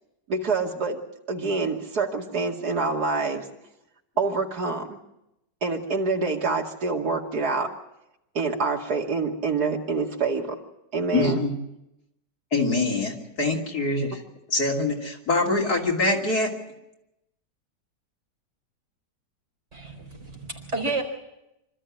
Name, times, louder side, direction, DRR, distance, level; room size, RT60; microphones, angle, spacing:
voice 1, 0.3-1.0 1.3-3.4 4.2-5.0 5.6-7.7 8.3-10.6 10.9-11.4, right 4 dB, 65° right, 1 dB, 2.8 m, -26 dB
voice 2, 11.1-11.5 12.5-14.2 14.5-16.5, left 2 dB, 65° left, 0 dB, 3.4 m, -24 dB
voice 3, 19.7-21.0, right 3 dB, 40° right, 2 dB, 4.6 m, -31 dB
26.0 x 13.5 x 8.6 m, 0.89 s
omnidirectional pair, 1.8 m